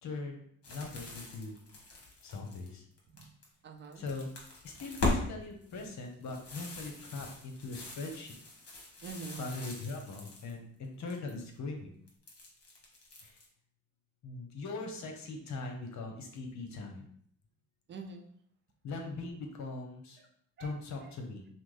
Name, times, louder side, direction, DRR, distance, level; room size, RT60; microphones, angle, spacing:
voice 1, 0.0-1.6 2.2-2.8 4.0-4.3 4.6-8.3 9.4-11.9 13.2-13.3 14.2-17.0 18.8-20.2 20.6-21.5, left 3 dB, 65° left, 3 dB, 1.0 m, -41 dB
sound 1, 0.6-3.5 3.8-5.2 5.6-10.5 10.8-11.5 12.1-13.4, left 2 dB, 50° left, 1.5 m, -40 dB
voice 2, 3.6-4.0 5.7-5.8 9.0-9.5 17.9-18.3 20.2-20.3 20.6-21.1, right 4 dB, 35° right, 4 dB, 0.6 m, -46 dB
5.8 x 2.1 x 3.2 m, 0.63 s
cardioid pair, 90°, 30 cm